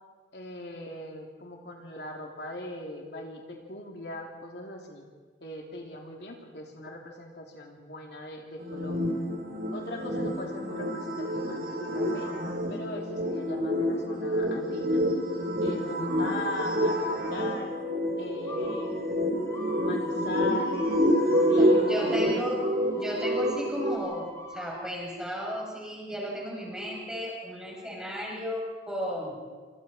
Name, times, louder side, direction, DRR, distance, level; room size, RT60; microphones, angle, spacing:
voice 1, 0.3-5.0 5.4-9.1 9.7-12.3 12.7-15.0 15.6-17.0 17.3-17.7 18.2-19.5 19.8-22.5, left 2 dB, 70° left, 1 dB, 3.0 m, -40 dB
sound 1, 8.6-24.0, equal, 55° right, 2.9 m, -28 dB
sound 2, 16.1-16.8 17.2-17.8 18.5-24.8, left 1 dB, 15° left, 6.6 m, -45 dB
voice 2, 21.6-22.6 23.0-29.4, equal, 5° right, -3 dB, 6.6 m, -34 dB
27.5 x 27.0 x 4.4 m, 1.5 s
head